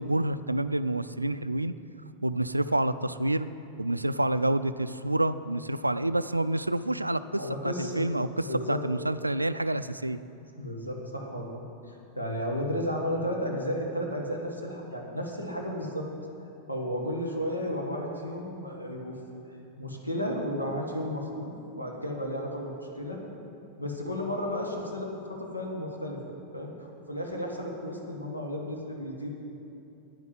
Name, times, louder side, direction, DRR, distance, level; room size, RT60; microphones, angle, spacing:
voice 1, 0.0-1.7 2.2-3.5 3.8-10.2, right 1 dB, 85° right, 13 dB, 0.3 m, -28 dB
voice 2, 7.3-8.0 8.5-8.8 10.6-11.6 11.9-16.1 16.7-19.2 19.8-23.2 23.8-26.2 26.5-26.7 27.1-29.3, equal, 85° left, 0 dB, 1.8 m, -33 dB
9.6 x 9.6 x 7.4 m, 2.8 s
figure-of-eight pair, 90°, 0 cm